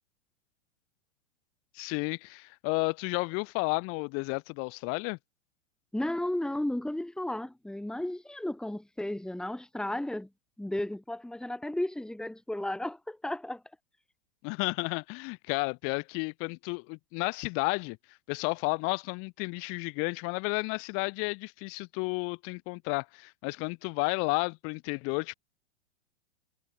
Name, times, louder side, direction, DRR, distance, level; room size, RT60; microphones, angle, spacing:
voice 1, 1.7-5.2 14.4-25.3, left 31 dB, 35° left, 2.8 m, -32 dB
voice 2, 5.9-10.3 10.6-13.6, left 1 dB, ahead, 3.3 m, -34 dB
figure-of-eight pair, 105°, 36 cm